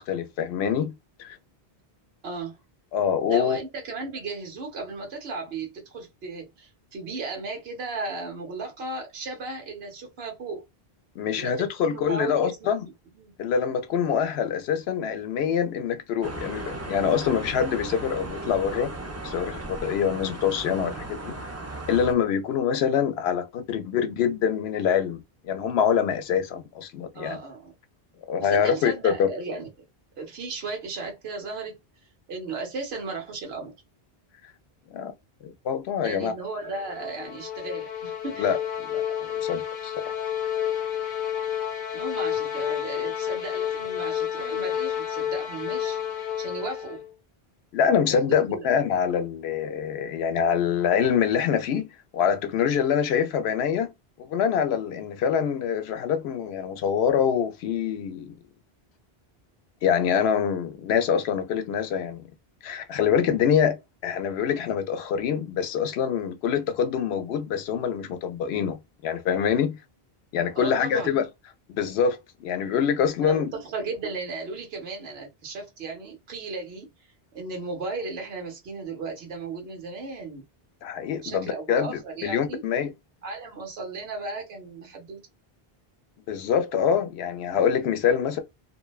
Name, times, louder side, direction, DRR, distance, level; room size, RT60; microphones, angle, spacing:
voice 1, 0.0-1.4 2.9-3.6 11.2-12.9 13.4-18.9 19.2-21.4 21.9-27.4 28.3-29.3 34.9-35.1 35.4-36.3 38.4-40.1 47.7-51.9 52.1-53.9 54.2-58.3 59.8-62.2 62.6-69.8 70.3-71.3 71.7-73.5 80.8-82.9 86.3-88.4, left 7 dB, 90° left, 0.8 m, -25 dB
voice 2, 2.2-2.6 3.3-10.6 11.3-13.3 27.1-27.7 28.4-29.7 30.2-31.7 32.3-33.7 36.0-38.5 39.1-39.2 41.9-46.0 46.4-47.0 48.2-48.7 70.6-71.2 73.2-76.9 77.3-80.4 81.2-82.6 83.2-85.2, right 3 dB, 80° right, 1.1 m, -35 dB
sound 1, 16.2-22.1, right 2 dB, 25° right, 0.3 m, -36 dB
sound 2, 36.5-47.1, left 10 dB, 55° left, 0.7 m, -30 dB
2.6 x 2.1 x 2.3 m
omnidirectional pair, 1.0 m